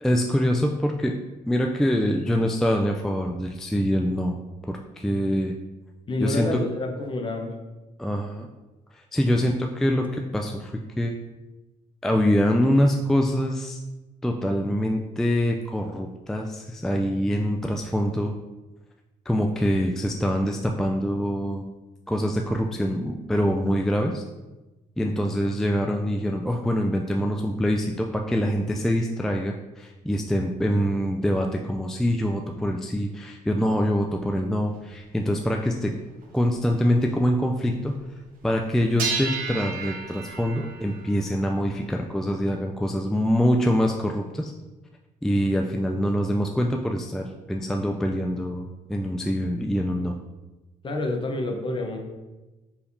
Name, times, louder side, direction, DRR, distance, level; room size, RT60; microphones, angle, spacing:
voice 1, 0.0-1.1 1.5-4.4 4.7-5.5 6.2-6.6 8.0-8.5 8.9-11.1 12.0-13.8 14.2-18.3 19.3-21.6 22.1-24.2 25.0-35.9 36.3-37.9 38.4-44.5 45.2-50.2, equal, 5° left, 2 dB, 0.3 m, -24 dB
voice 2, 6.1-7.5 9.3-9.5 50.8-52.1, left 2 dB, 35° left, 3 dB, 0.7 m, -28 dB
sound 1, 34.7-34.8 35.6-35.7 36.2-36.3 36.8-37.0 39.0-42.1, right 5 dB, 65° right, 0.8 m, -33 dB
4.7 x 3.4 x 2.6 m, 1.1 s
cardioid pair, 80°, 16 cm